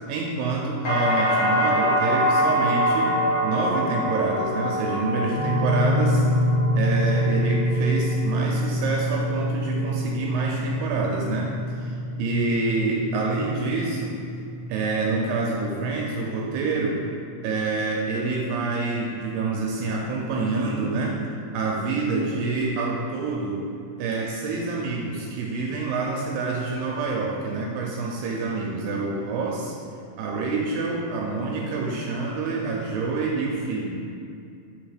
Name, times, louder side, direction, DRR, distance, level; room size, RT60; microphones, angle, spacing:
voice 1, 0.1-3.2 3.4-6.2 6.8-14.2 14.7-17.0 17.4-21.2 21.5-23.6 24.0-29.8 30.2-33.9, right 3 dB, 85° right, -2 dB, 2.3 m, -27 dB
sound 1, 0.8-8.8 9.1-9.8, equal, 55° left, 1.5 m, -25 dB
sound 2, 5.4-15.1, equal, 55° right, 1.5 m, -26 dB
7.0 x 3.1 x 5.0 m, 2.5 s
omnidirectional pair, 4.1 m